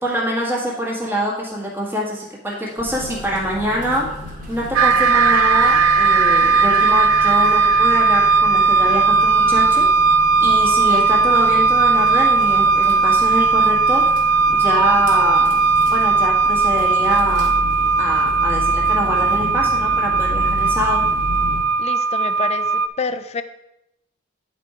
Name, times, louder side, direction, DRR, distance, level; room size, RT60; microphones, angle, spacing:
voice 1, 0.0-4.1 4.5-10.1 10.4-14.0 14.5-15.6 15.9-17.6 18.0-21.0, equal, 10° right, -3 dB, 1.6 m, -25 dB
sound 1, 2.8-21.6, left 1 dB, 40° right, 2.0 m, -32 dB
sound 2, 4.8-22.9, right 4 dB, 85° right, 0.4 m, -17 dB
voice 2, 21.8-22.7 23.0-23.4, left 4 dB, 30° left, 10 dB, 0.4 m, -27 dB
9.7 x 4.3 x 4.9 m, 0.86 s
head